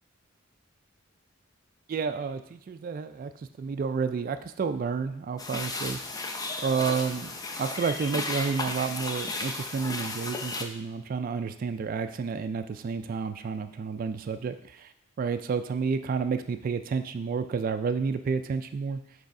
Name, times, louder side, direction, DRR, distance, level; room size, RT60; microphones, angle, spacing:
voice 1, 1.9-3.3 3.6-6.0 6.6-14.9 15.2-19.0, right 5 dB, 45° right, 9 dB, 0.3 m, -30 dB
sound 1, 5.4-10.6, left 3 dB, 20° left, 0.5 m, -34 dB
6.5 x 3.4 x 4.7 m, 0.74 s
head